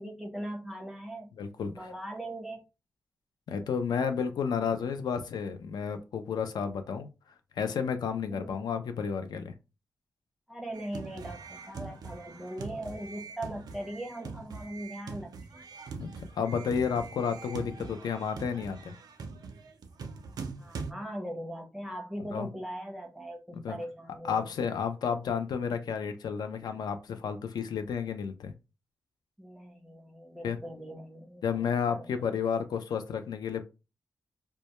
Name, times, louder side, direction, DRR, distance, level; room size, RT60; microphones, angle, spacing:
voice 1, 0.0-1.3 1.8-2.6 3.5-3.7 8.3-8.6 10.5-15.8 20.6-24.5 29.4-32.2, right 1 dB, 5° right, 1 dB, 0.5 m, -40 dB
voice 2, 1.4-1.7 3.5-7.1 7.6-9.5 16.0-16.1 16.4-18.9 22.3-22.5 23.5-23.8 24.3-28.5 30.4-30.6 31.4-33.7, left 6 dB, 80° left, 8 dB, 0.4 m, -31 dB
sound 1, 10.7-20.9, right 4 dB, 70° right, 0.4 m, -43 dB
2.1 x 2.1 x 2.8 m, 0.28 s
wide cardioid pair, 155°, 7 cm